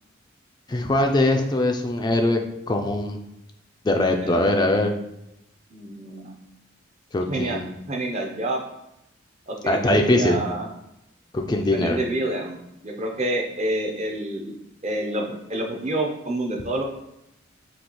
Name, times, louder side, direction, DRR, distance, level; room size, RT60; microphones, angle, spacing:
voice 1, 0.7-2.4 2.7-3.2 3.8-4.9 7.1-7.7 9.6-10.4 11.3-12.0, left 1 dB, 20° left, 3 dB, 0.3 m, -21 dB
voice 2, 5.7-6.4 7.3-7.6 7.9-8.6 9.5-10.7 11.7-12.6 12.8-14.5 14.8-16.8, right 1 dB, 35° right, 2 dB, 0.6 m, -28 dB
6.0 x 2.3 x 3.0 m, 0.84 s
head